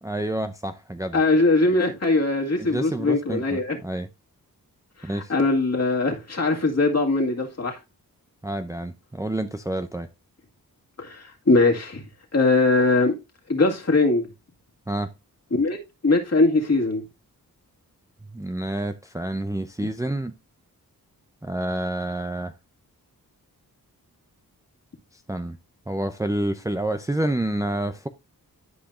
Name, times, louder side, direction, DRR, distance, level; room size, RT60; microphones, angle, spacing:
voice 1, 0.0-1.2 2.6-4.1 5.0-5.3 8.4-10.1 14.9-15.1 18.3-20.3 21.4-22.5 25.3-25.6 25.9-28.1, right 1 dB, 10° right, 0.6 m, -28 dB
voice 2, 1.1-3.8 5.0-7.8 11.0-12.0 12.3-13.2 13.5-14.3 15.5-15.8 16.0-17.0 19.8-19.9, left 3 dB, 45° left, 2.0 m, -21 dB
11.5 x 5.1 x 2.5 m
cardioid pair, 70°, 36 cm